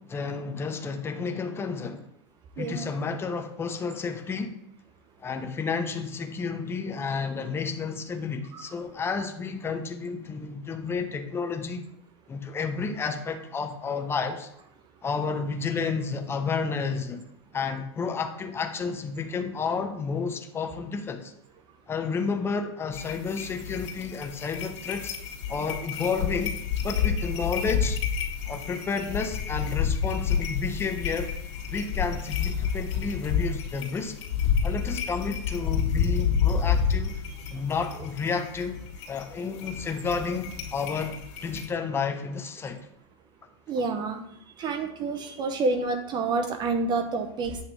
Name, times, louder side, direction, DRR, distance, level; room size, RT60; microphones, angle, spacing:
voice 1, 0.0-2.1 2.6-4.6 5.2-11.9 12.3-14.5 15.0-17.2 17.5-21.3 21.9-25.2 25.5-26.6 26.8-28.0 28.5-31.3 31.7-34.2 34.6-37.2 37.5-38.8 39.1-42.8 43.8-43.9, left 5 dB, 15° left, 6 dB, 0.9 m, -31 dB
sound 1, 22.9-41.7, left 7 dB, 75° left, 2.4 m, -29 dB
voice 2, 43.7-44.2 44.6-47.6, right 3 dB, 30° right, 7 dB, 0.8 m, -28 dB
8.8 x 3.6 x 6.8 m, 0.76 s
supercardioid pair, 135°, 15 cm